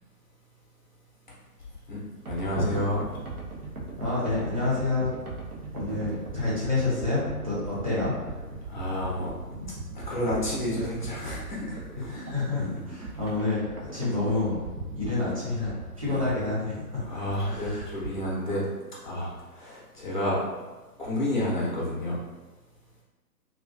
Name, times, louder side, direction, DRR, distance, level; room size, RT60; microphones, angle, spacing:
voice 1, 2.3-3.0 5.9-6.0 8.7-9.3 9.9-12.3 12.7-12.8 16.0-16.3 17.0-18.6 19.0-20.4 21.0-22.2, left 1 dB, 30° left, -6 dB, 0.7 m, -30 dB
sound 1, 2.3-18.3, right 3 dB, 65° right, 0.7 m, -39 dB
voice 2, 4.0-5.1 5.7-8.1 12.1-14.6 14.9-17.8, left 3 dB, 25° right, -10 dB, 0.6 m, -28 dB
2.4 x 2.4 x 2.3 m, 1.2 s
figure-of-eight pair, 140°, 47 cm